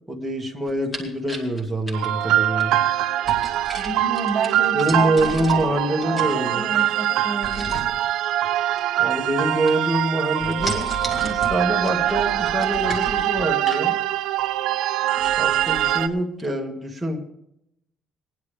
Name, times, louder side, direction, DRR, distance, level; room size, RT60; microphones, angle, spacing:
voice 1, 0.1-2.8 4.7-6.7 9.0-10.9 11.2-14.0 15.4-17.2, right 1 dB, ahead, -2 dB, 1.8 m, -25 dB
sound 1, 0.7-2.7 3.2-5.8 6.0-6.8 7.4-8.0 8.7-9.4 9.7-10.1 10.4-13.9 14.4-14.5 14.8-14.9 15.2-16.0 16.4-16.5, right 1 dB, 15° left, 2.2 m, -34 dB
sound 2, 1.9-16.1, right 13 dB, 75° right, 0.6 m, -23 dB
voice 2, 3.8-5.6 6.0-7.7, right 4 dB, 30° right, 0 dB, 2.3 m, -30 dB
19.0 x 10.5 x 3.4 m, 0.78 s
cardioid pair, 180°, 0 cm